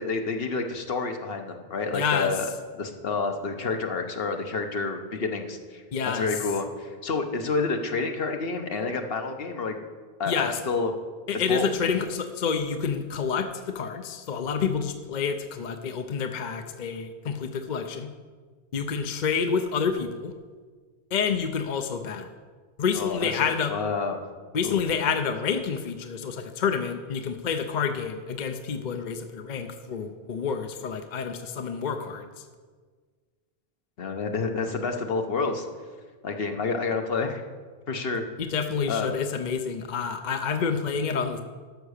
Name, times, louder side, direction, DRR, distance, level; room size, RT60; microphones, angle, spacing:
voice 1, 0.0-2.5 2.8-5.8 6.1-9.8 10.2-10.9 11.3-11.7 22.9-24.2 24.6-24.8 34.0-35.7 36.2-37.4 37.9-38.2 38.9-39.1, left 4 dB, 70° left, 5 dB, 1.2 m, -29 dB
voice 2, 1.9-2.3 5.9-6.3 10.3-10.6 11.3-18.1 18.7-20.3 21.1-22.3 22.8-23.7 24.5-32.3 38.4-41.4, left 6 dB, 50° left, 7 dB, 0.7 m, -28 dB
13.0 x 5.9 x 6.5 m, 1.5 s
omnidirectional pair, 1.0 m